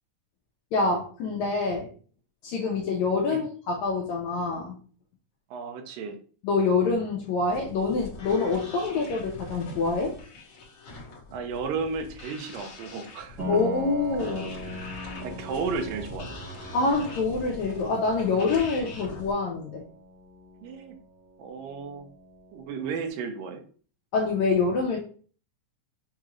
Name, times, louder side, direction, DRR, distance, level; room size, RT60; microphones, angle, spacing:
voice 1, 0.7-1.9 2.4-4.8 6.4-10.1 13.5-14.5 16.7-19.8 24.1-25.0, left 4 dB, 80° left, 0 dB, 1.7 m, -26 dB
voice 2, 5.5-6.2 11.3-13.4 15.2-16.4 20.6-21.0 21.4-22.1 22.5-23.6, right 5 dB, 85° right, 7 dB, 2.4 m, -33 dB
sound 1, 7.4-19.3, left 2 dB, 60° left, 1.3 m, -42 dB
Piano, 13.4-23.0, right 1 dB, 50° right, 0.9 m, -41 dB
6.4 x 2.4 x 3.0 m, 0.42 s
omnidirectional pair, 3.9 m